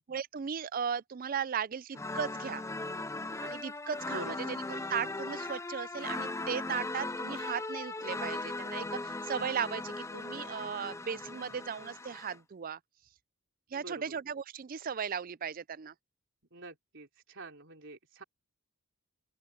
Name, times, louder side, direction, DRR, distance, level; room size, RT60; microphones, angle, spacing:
voice 1, 0.1-2.6 3.4-12.8 13.7-15.9, right 7 dB, 40° right, 0.4 m, -37 dB
sound 1, 1.9-12.4, left 2 dB, 15° left, 0.5 m, -38 dB
voice 2, 4.1-4.6 13.7-14.2 16.5-18.2, right 2 dB, 55° right, 3.8 m, -46 dB
open air
head